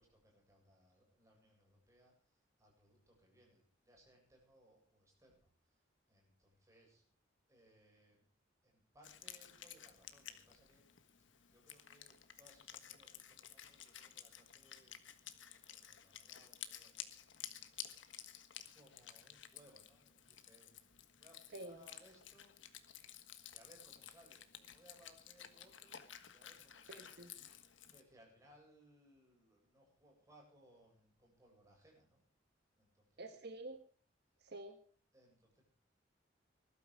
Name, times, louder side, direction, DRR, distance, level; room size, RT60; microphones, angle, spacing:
voice 1, 0.0-7.1 7.5-8.3 8.6-10.9 11.5-15.0 15.3-18.3 18.7-22.6 23.4-27.2 27.5-32.2 32.7-33.5 34.3-34.4 35.1-35.6, right 1 dB, 15° right, -1 dB, 8.0 m, -67 dB
Wind instrument woodwind instrument, 9.0-28.0, left 10 dB, 75° left, 1.5 m, -54 dB
voice 2, 26.9-27.3 33.2-33.8 34.4-34.8, right 2 dB, 60° right, 6 dB, 1.5 m, -49 dB
20.0 x 12.5 x 4.9 m, 0.41 s
head